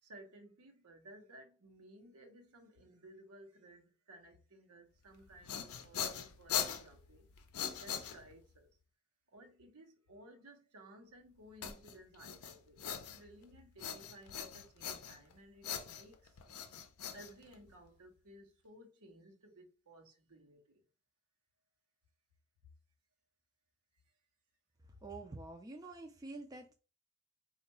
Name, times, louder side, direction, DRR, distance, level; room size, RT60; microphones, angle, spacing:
voice 1, 0.0-7.3 7.7-8.7 9.3-16.4 17.1-20.8 24.9-25.0, right 1 dB, 90° right, 0.9 m, -58 dB
sound 1, 5.2-8.6 11.6-13.4 13.8-15.3 15.6-17.9, left 8 dB, 85° left, 0.5 m, -41 dB
voice 2, 25.0-26.7, right 2 dB, 15° right, 0.3 m, -47 dB
4.4 x 2.4 x 3.0 m
head